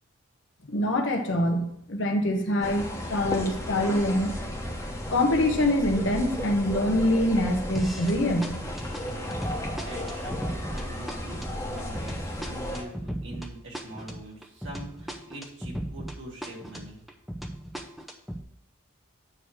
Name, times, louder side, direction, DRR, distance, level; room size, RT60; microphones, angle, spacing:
voice 1, 0.6-4.3 5.1-8.6, left 1 dB, 65° left, 3 dB, 1.1 m, -25 dB
sound 1, 2.6-12.8, left 1 dB, 15° left, 1.0 m, -34 dB
sound 2, 7.7-8.2 8.4-16.2 16.4-18.4, right 1 dB, ahead, 0.5 m, -36 dB
voice 2, 9.1-17.0, right 1 dB, 60° right, -3 dB, 2.1 m, -44 dB
8.9 x 3.1 x 6.4 m, 0.77 s
head